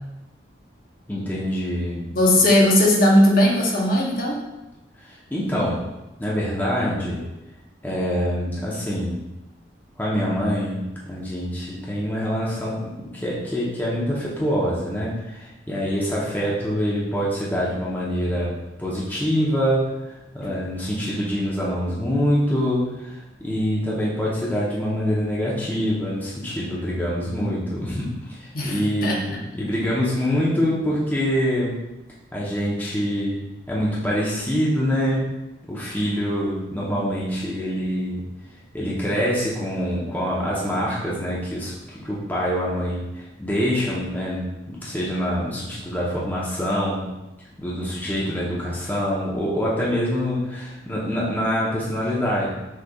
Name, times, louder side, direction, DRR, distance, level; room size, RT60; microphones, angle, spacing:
voice 1, 1.1-2.0 5.0-5.8 6.2-7.3 7.8-9.2 10.0-10.8 11.1-18.5 18.8-31.8 32.3-33.4 33.7-35.3 35.6-38.2 38.7-47.0 47.6-52.5, equal, 10° left, -6 dB, 0.8 m, -25 dB
voice 2, 2.1-4.4 28.5-29.4, left 1 dB, 50° left, -2 dB, 0.9 m, -18 dB
6.3 x 3.2 x 2.3 m, 0.99 s
head